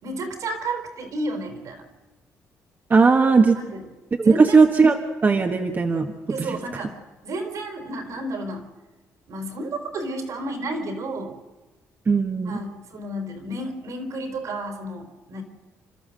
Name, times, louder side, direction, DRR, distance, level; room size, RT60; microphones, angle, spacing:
voice 1, 0.0-1.8 3.5-3.8 4.2-4.6 6.3-7.0 7.2-8.7 9.3-11.3 12.5-15.4, right 1 dB, 65° right, 6 dB, 4.2 m, -31 dB
voice 2, 2.9-3.6 4.2-6.1 6.4-6.6 12.1-12.6, right 4 dB, 35° right, 3 dB, 1.6 m, -18 dB
29.0 x 13.0 x 7.7 m, 1.2 s
cardioid pair, 90°, 6 cm